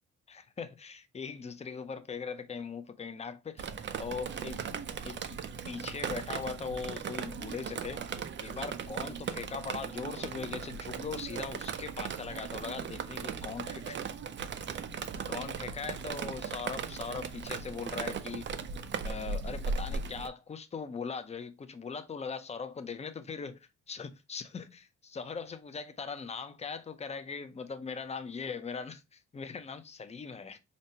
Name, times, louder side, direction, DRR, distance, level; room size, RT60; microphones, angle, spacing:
voice 1, 0.3-3.7 4.0-4.6 5.0-5.4 5.7-14.0 15.3-18.5 19.0-30.6, left 5 dB, 20° left, 0.5 m, -40 dB
Drip, 3.6-20.3, right 6 dB, 40° right, 0.4 m, -38 dB
5.1 x 2.1 x 2.7 m
cardioid pair, 90°, 30 cm